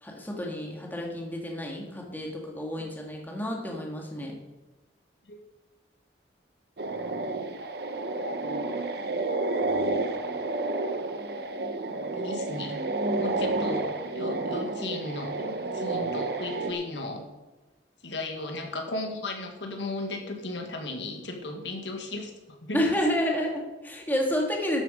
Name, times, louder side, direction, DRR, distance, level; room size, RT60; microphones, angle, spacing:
voice 1, 0.0-4.3 22.7-24.8, equal, 10° left, -1 dB, 1.8 m, -30 dB
sound 1, 6.8-16.7, right 2 dB, 60° right, 0.9 m, -30 dB
voice 2, 12.1-12.8 13.2-17.2 18.0-22.8, left 2 dB, 75° left, 3 dB, 1.7 m, -35 dB
12.5 x 7.4 x 5.2 m, 1.1 s
head